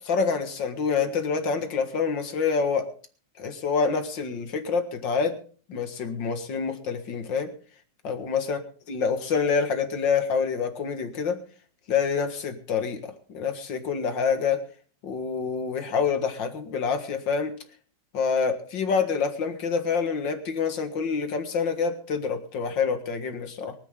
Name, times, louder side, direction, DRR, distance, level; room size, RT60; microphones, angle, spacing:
voice 1, 0.0-2.9 3.4-5.4 5.7-7.5 8.0-8.6 8.9-11.4 11.9-13.0 13.3-14.6 15.0-17.5 18.1-23.7, left 5 dB, 90° left, 8 dB, 2.4 m, -26 dB
23.5 x 10.0 x 3.7 m, 0.41 s
omnidirectional pair, 1.9 m